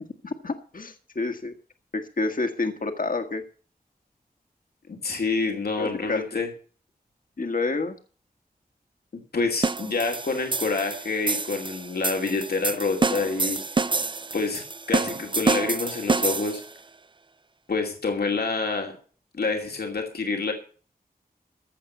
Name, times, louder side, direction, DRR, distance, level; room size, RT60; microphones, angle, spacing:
voice 1, 0.2-1.5 1.9-3.4 5.8-6.4 7.4-8.0, left 3 dB, 60° left, 6 dB, 1.5 m, -29 dB
voice 2, 4.9-6.5 9.3-13.6 14.3-16.6 17.7-19.0 19.4-20.5, left 4 dB, 90° left, 2 dB, 2.5 m, -27 dB
sound 1, 9.6-16.7, right 3 dB, 30° right, 0.5 m, -27 dB
15.5 x 6.0 x 8.0 m, 0.41 s
cardioid pair, 45°, 16 cm